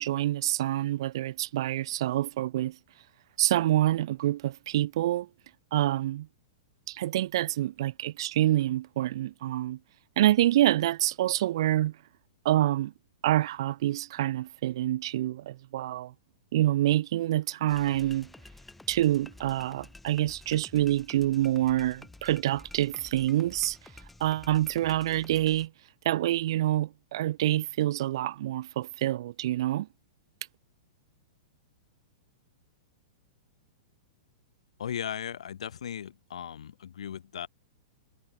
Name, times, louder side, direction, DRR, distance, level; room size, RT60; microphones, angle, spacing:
voice 1, 0.0-2.8 3.4-5.3 5.7-6.3 6.9-9.8 10.2-12.0 12.4-12.9 13.2-16.1 16.5-18.3 18.9-23.8 24.2-25.7 26.0-29.9, right 14 dB, 50° right, 4.2 m, -27 dB
sound 1, 17.7-25.7, left 2 dB, 5° left, 4.5 m, -51 dB
voice 2, 34.8-37.5, left 9 dB, 90° left, 3.2 m, -37 dB
supercardioid pair, 170°, 3 cm